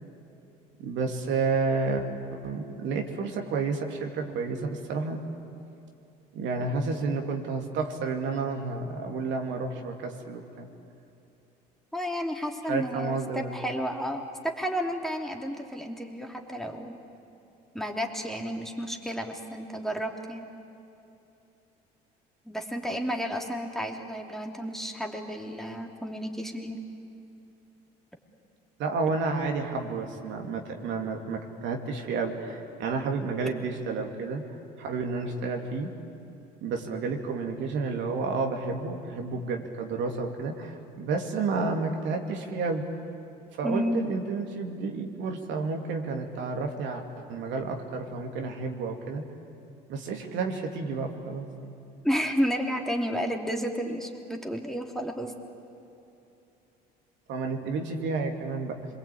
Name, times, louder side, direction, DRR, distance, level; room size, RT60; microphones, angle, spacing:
voice 1, 0.8-5.2 6.3-10.7 12.7-13.6 28.8-34.4 34.8-35.9 36.6-42.8 43.5-49.2 49.9-51.7 57.3-58.8, right 4 dB, 70° right, 3 dB, 2.7 m, -31 dB
voice 2, 11.9-17.0 17.7-20.4 22.5-26.8 43.6-44.0 52.0-55.3, equal, ahead, 2 dB, 2.9 m, -31 dB
26.0 x 22.0 x 8.8 m, 2.8 s
supercardioid pair, 75°, 20 cm